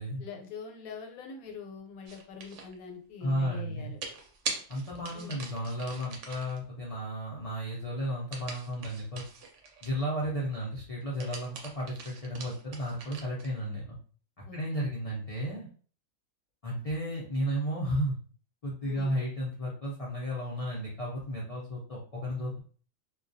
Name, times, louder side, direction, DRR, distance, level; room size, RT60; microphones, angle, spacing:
voice 1, 0.2-4.0 5.1-5.4 14.5-14.9 18.8-19.1, left 4 dB, 85° left, 3 dB, 1.1 m, -44 dB
sound 1, 2.1-2.7 4.0-6.6 8.3-10.1 11.0-13.6, right 4 dB, 65° right, 0.8 m, -42 dB
voice 2, 3.2-3.9 4.7-9.2 9.8-14.0 14.5-15.7 16.6-18.2 18.6-22.6, equal, 55° left, -5 dB, 0.4 m, -33 dB
2.2 x 2.2 x 2.5 m, 0.42 s
omnidirectional pair, 1.5 m